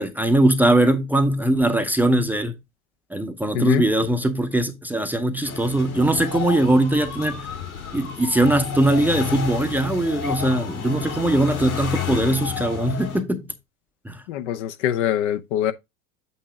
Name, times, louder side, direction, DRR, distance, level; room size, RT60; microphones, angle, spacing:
voice 1, 0.0-2.5 3.1-7.5 7.9-13.4 14.0-14.2, right 1 dB, 5° right, 0.7 m, -21 dB
sound 1, 5.4-13.2, left 8 dB, 75° left, 4.1 m, -31 dB
voice 2, 14.3-15.7, left 10 dB, 50° left, 0.8 m, -23 dB
8.4 x 2.9 x 4.7 m
figure-of-eight pair, 85°, 43 cm